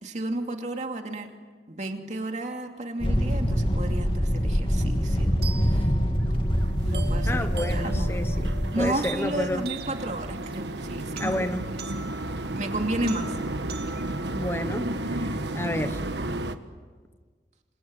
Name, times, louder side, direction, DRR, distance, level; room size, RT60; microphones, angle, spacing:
voice 1, 0.0-1.3 1.7-5.9 6.8-8.1 8.7-11.5 12.6-13.3, right 1 dB, 40° right, 4 dB, 2.6 m, -32 dB
sound 1, 3.0-8.9, equal, 30° left, 2.4 m, -25 dB
sound 2, 5.4-15.4, right 6 dB, 65° right, 2.3 m, -43 dB
sound 3, 6.6-16.6, right 1 dB, 85° right, 1.4 m, -33 dB
voice 2, 7.3-9.7 11.2-11.6 14.3-16.0, left 1 dB, 15° left, 9 dB, 1.1 m, -30 dB
28.5 x 26.5 x 7.8 m, 1.5 s
head